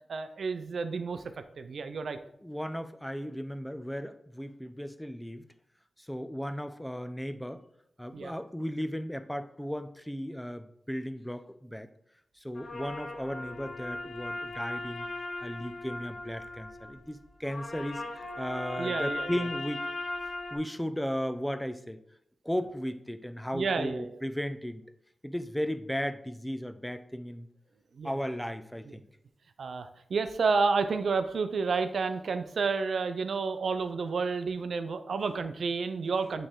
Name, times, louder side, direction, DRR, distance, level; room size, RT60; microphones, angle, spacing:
voice 1, 0.1-1.2 1.6-2.2 8.1-8.3 18.8-19.4 23.5-24.2 27.9-28.2 29.6-36.5, right 4 dB, 85° right, 9 dB, 0.5 m, -30 dB
voice 2, 2.4-5.5 6.0-7.6 8.0-11.9 12.4-15.1 15.4-19.8 20.5-22.0 22.4-24.8 25.2-27.5 28.0-29.1, equal, 5° left, 10 dB, 0.6 m, -35 dB
sound 1, 12.6-20.6, left 2 dB, 65° left, 1.1 m, -38 dB
8.6 x 3.3 x 3.7 m, 0.73 s
cardioid pair, 45°, 0 cm